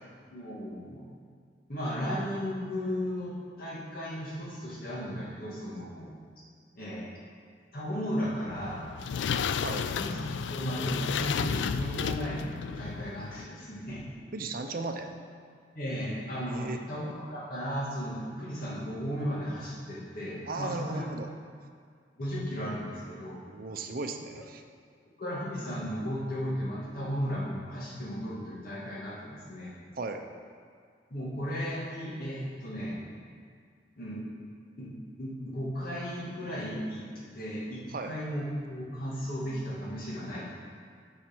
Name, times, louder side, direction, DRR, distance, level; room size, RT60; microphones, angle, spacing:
voice 1, 0.3-1.0 1.7-6.1 6.8-7.1 7.7-8.9 9.9-10.2 10.5-12.4 12.8-14.0 15.7-21.0 22.2-23.4 25.2-29.8 31.1-33.0 34.0-34.3 34.8-34.9 35.2-37.1 37.3-40.5, equal, 55° left, -6 dB, 2.1 m, -35 dB
sound 1, 8.5-13.5, left 6 dB, 80° left, 0.3 m, -32 dB
voice 2, 14.3-15.1 16.5-16.8 20.5-21.3 23.5-24.6 29.9-30.2 37.9-38.1, right 3 dB, 55° right, 5 dB, 0.7 m, -36 dB
7.4 x 6.5 x 6.1 m, 2.1 s
head